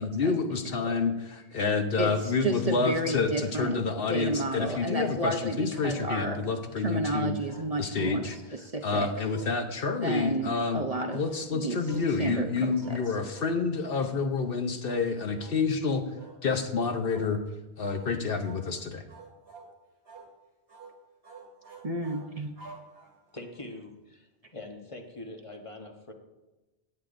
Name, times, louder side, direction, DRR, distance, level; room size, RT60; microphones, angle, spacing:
voice 1, 0.0-7.3 7.8-8.4 8.8-10.8 11.1-16.0 16.4-17.4 17.8-19.0, left 4 dB, 60° left, 6 dB, 1.0 m, -28 dB
voice 2, 2.0-3.8 4.1-6.4 6.8-9.1 9.9-11.2 11.5-11.8 12.2-12.7 21.8-22.5, right 2 dB, 40° right, 3 dB, 0.8 m, -31 dB
sound 1, 5.7-6.5 7.5-8.5 9.0-10.0 11.1-11.3 11.8-12.1 12.8-13.1 13.3-13.6 13.9-14.2 14.8-15.1 15.3-15.6 16.2-16.4 17.1-17.3 17.8-18.1 18.4-18.7 19.1-19.7 20.1-20.3 20.7-20.9 21.2-23.4, right 4 dB, 65° right, 2.2 m, -49 dB
voice 3, 23.3-26.1, left 2 dB, 30° left, 3 dB, 1.1 m, -43 dB
16.5 x 8.6 x 2.6 m, 1.1 s
omnidirectional pair, 1.1 m